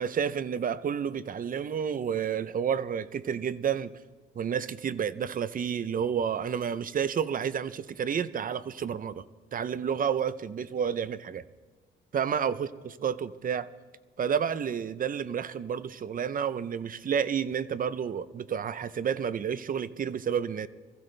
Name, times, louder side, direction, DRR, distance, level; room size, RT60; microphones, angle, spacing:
voice 1, 0.0-3.9 4.4-9.2 9.5-11.4 12.1-13.7 14.2-20.7, right 7 dB, 45° right, 16 dB, 0.7 m, -30 dB
22.5 x 15.0 x 3.4 m, 1.4 s
cardioid pair, 90°, 20 cm